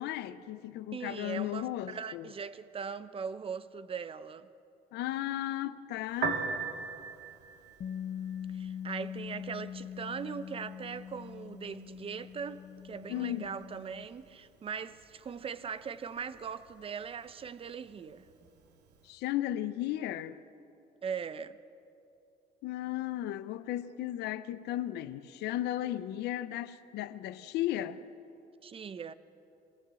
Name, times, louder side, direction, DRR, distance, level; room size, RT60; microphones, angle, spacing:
voice 1, 0.0-2.3 4.9-6.4 13.1-13.5 19.0-20.4 22.6-28.0, left 13 dB, 80° left, 0.8 m, -35 dB
voice 2, 0.9-4.5 8.5-18.3 21.0-21.6 28.6-29.1, right 6 dB, 35° right, 0.8 m, -40 dB
Piano, 6.1-19.1, right 5 dB, 80° right, 2.2 m, -44 dB
Bass guitar, 7.8-14.1, left 9 dB, 45° left, 0.5 m, -42 dB
23.0 x 16.5 x 7.7 m
cardioid pair, 110°, 17 cm